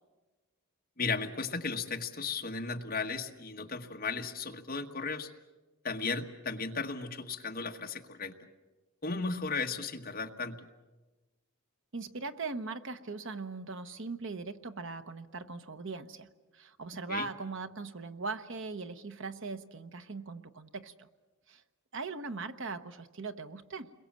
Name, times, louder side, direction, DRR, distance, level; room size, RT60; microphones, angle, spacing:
voice 1, 1.0-5.3 5.8-8.3 9.0-10.6 17.1-17.2, left 4 dB, 40° left, 3 dB, 1.5 m, -35 dB
voice 2, 11.9-21.1 21.5-21.6 21.9-23.9, right 4 dB, 55° right, 9 dB, 1.0 m, -40 dB
29.5 x 22.0 x 7.5 m, 1.2 s
head